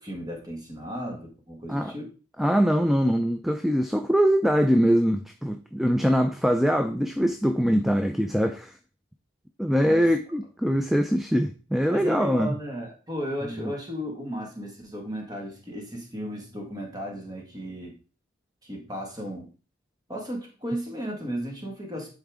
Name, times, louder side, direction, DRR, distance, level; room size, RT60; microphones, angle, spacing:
voice 1, 0.0-2.1 9.8-10.0 11.9-18.0 18.6-19.5 20.1-22.1, equal, 20° right, 1.7 m, -35 dB
voice 2, 2.4-8.7 9.6-12.6 13.5-13.7, equal, ahead, 0.3 m, -23 dB
10.5 x 4.4 x 3.6 m
head